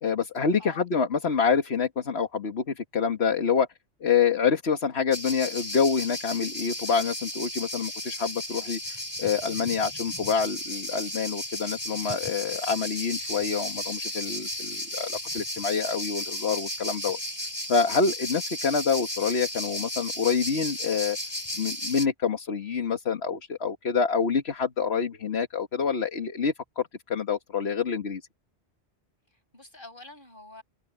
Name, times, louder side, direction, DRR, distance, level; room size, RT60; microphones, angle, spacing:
voice 1, 0.0-3.7 4.0-17.2 17.7-21.2 21.6-28.2, left 5 dB, 65° left, 1.8 m, -27 dB
voice 2, 0.6-0.9 29.3-30.6, left 2 dB, 50° left, 7.4 m, -47 dB
sound 1, 5.1-22.1, left 1 dB, 20° left, 5.0 m, -34 dB
omnidirectional pair, 1.2 m